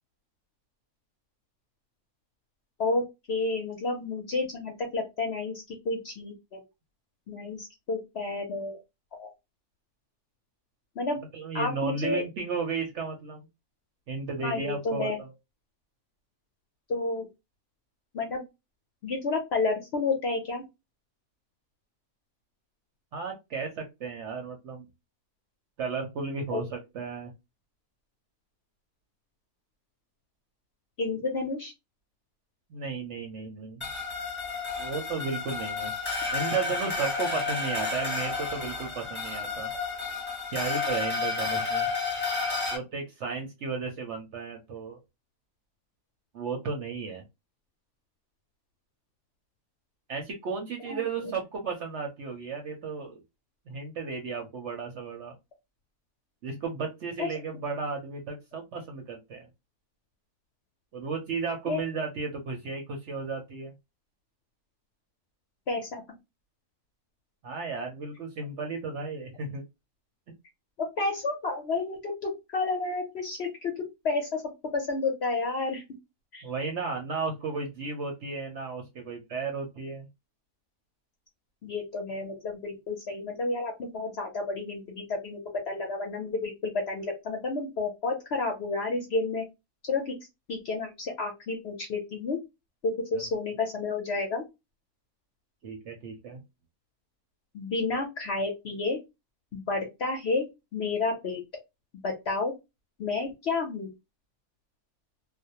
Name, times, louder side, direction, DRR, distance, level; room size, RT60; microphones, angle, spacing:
voice 1, 3.3-6.6 7.3-8.8 9.1-9.3 11.0-11.2 11.5-12.2 14.4-15.2 16.9-17.3 18.1-18.4 19.0-20.6 26.5-26.6 31.0-31.7 50.8-51.3 57.2-57.3 61.7-61.8 65.7-66.0 70.8-74.4 74.7-75.8 76.3-76.5 81.6-85.4 85.7-89.4 89.8-90.2 90.5-92.4 92.8-94.4 97.5-99.0 99.5-100.5 100.7-101.4 102.0-102.5 103.0-103.9, left 3 dB, 60° left, 2 dB, 0.7 m, -30 dB
voice 2, 11.3-13.5 14.1-15.3 23.1-24.9 25.8-27.3 32.7-33.8 34.8-35.9 36.3-39.7 40.5-41.9 42.7-45.0 46.3-47.2 50.1-53.2 53.7-55.3 56.4-59.5 60.9-63.7 67.4-69.6 76.4-80.1 95.6-96.4, right 4 dB, 60° right, 2 dB, 0.8 m, -34 dB
sound 1, 33.8-42.8, left 4 dB, 10° left, 0.6 m, -31 dB
2.5 x 2.0 x 2.7 m, 0.22 s
omnidirectional pair, 1.6 m